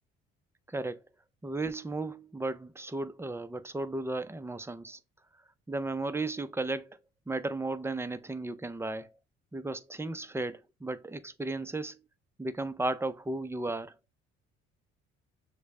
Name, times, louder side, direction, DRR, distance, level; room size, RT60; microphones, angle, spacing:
voice 1, 0.7-1.0 1.4-5.0 5.7-7.0 7.3-9.1 9.5-12.0 12.4-14.0, right 2 dB, 10° right, 0.5 m, -35 dB
6.4 x 2.2 x 3.2 m
hypercardioid pair, 60°, 30 cm